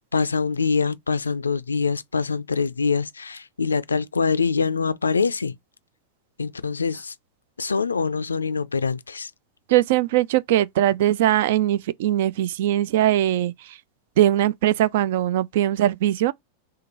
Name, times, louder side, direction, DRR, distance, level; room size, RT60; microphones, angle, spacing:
voice 1, 0.0-5.6 6.4-7.1 7.6-9.3, left 5 dB, 75° left, 0.4 m, -24 dB
voice 2, 9.7-13.5 14.2-16.3, right 13 dB, 55° right, 0.3 m, -20 dB
3.6 x 3.2 x 2.9 m
figure-of-eight pair, 90°, 0 cm